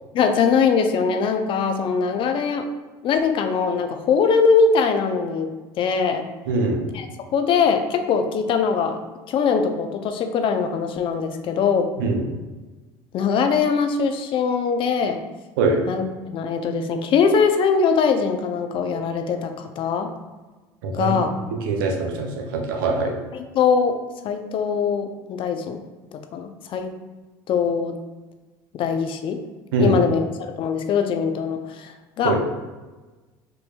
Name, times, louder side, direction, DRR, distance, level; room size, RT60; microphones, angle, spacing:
voice 1, 0.1-2.7 3.0-5.5 5.8-6.2 6.9-7.1 7.3-9.0 9.3-11.9 13.1-15.2 15.9-20.1 20.9-21.3 23.3-24.0 24.2-25.8 26.3-26.9 27.5-28.0 28.7-29.4 29.8-32.3, left 5 dB, 50° left, 7 dB, 0.4 m, -21 dB
voice 2, 6.5-6.9 12.0-12.3 15.6-15.8 20.8-21.2 21.6-23.2 29.7-30.0 32.2-32.4, right 3 dB, 85° right, 2 dB, 0.6 m, -22 dB
4.4 x 2.6 x 2.2 m, 1.2 s
supercardioid pair, 80°, 11 cm